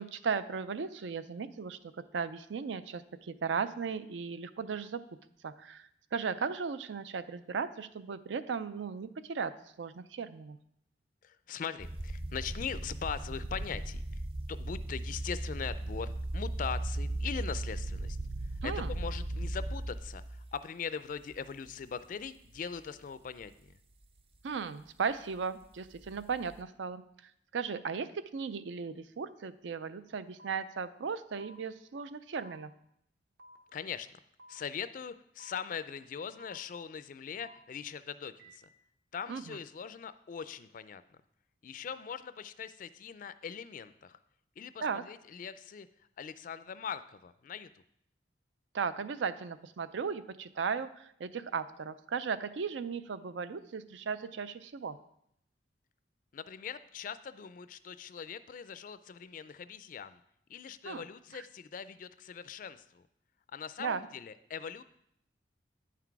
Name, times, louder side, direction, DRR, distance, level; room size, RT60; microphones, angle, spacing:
voice 1, 0.0-1.8 2.1-5.0 5.4-10.6 18.6-18.9 24.4-32.7 39.3-39.6 44.8-45.0 48.7-55.0 60.9-61.0 61.3-61.4 63.8-64.1, right 5 dB, 85° right, 13 dB, 0.4 m, -36 dB
voice 2, 11.2-14.0 14.5-18.2 18.6-23.7 33.7-34.1 34.5-38.7 39.1-41.2 41.6-44.2 44.6-45.9 46.2-47.7 56.3-60.2 60.5-63.0 63.5-64.8, left 7 dB, 45° left, 14 dB, 0.3 m, -41 dB
sound 1, 11.8-20.6 21.3-21.7 22.3-22.4 25.9-26.6, right 1 dB, 30° right, 0.5 m, -37 dB
sound 2, 30.4-30.6 31.4-31.6 32.4-32.6 33.4-33.6 34.4-34.6 35.4-35.6 36.4-36.6 37.4-37.6 38.4-38.6, equal, 55° right, 0.9 m, -54 dB
9.5 x 5.9 x 4.6 m, 0.73 s
head